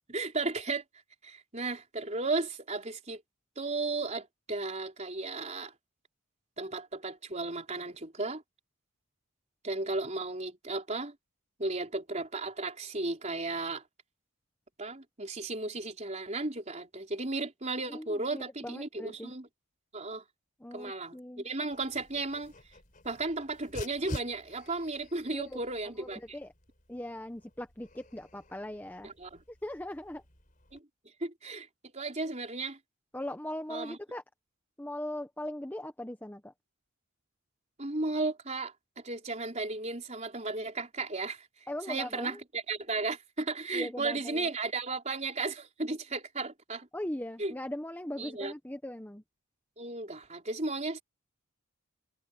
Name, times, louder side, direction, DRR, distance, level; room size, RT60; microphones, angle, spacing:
voice 1, 0.1-0.8 1.2-3.2 3.6-5.7 6.6-8.4 9.6-11.1 11.6-13.8 14.8-19.5 19.9-20.2 20.7-22.5 23.0-26.4 29.0-29.4 30.7-30.8 31.2-31.7 31.9-32.8 33.7-34.0 37.8-38.7 39.0-41.5 41.9-46.9 47.4-47.5 48.2-48.5 49.8-51.0, right 3 dB, 30° right, 4.3 m, -35 dB
voice 2, 17.9-19.3 20.6-21.4 25.3-25.6 26.0-26.5 26.9-29.1 29.6-30.2 33.1-34.2 34.8-36.5 41.7-42.4 43.7-44.5 46.9-49.2, left 1 dB, 10° left, 0.9 m, -39 dB
Dog, 21.7-30.8, left 1 dB, 40° left, 5.0 m, -49 dB
head